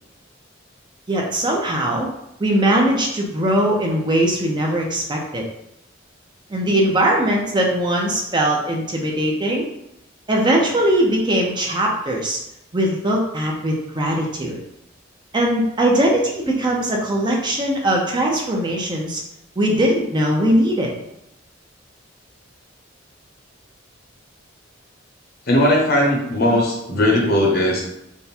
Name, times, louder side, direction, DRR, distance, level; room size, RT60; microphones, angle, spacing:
voice 1, 1.1-2.1 2.4-5.5 6.5-9.7 10.3-12.4 12.7-14.6 15.3-19.2 19.6-20.9, right 1 dB, 25° right, -1 dB, 0.6 m, -20 dB
voice 2, 25.5-27.8, left 1 dB, 55° left, -1 dB, 0.9 m, -18 dB
3.6 x 2.2 x 4.3 m, 0.82 s
head